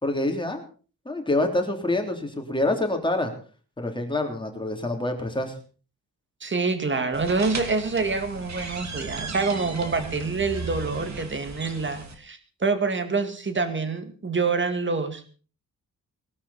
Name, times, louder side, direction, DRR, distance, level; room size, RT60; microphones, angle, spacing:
voice 1, 0.0-0.6 1.0-3.3 3.8-5.5, left 2 dB, 15° left, 4 dB, 3.3 m, -26 dB
voice 2, 6.4-15.4, right 4 dB, 30° right, 9 dB, 2.2 m, -26 dB
sound 1, 7.1-12.1, right 4 dB, 50° right, 2.9 m, -36 dB
20.5 x 13.0 x 4.3 m, 0.38 s
wide cardioid pair, 150°, 36 cm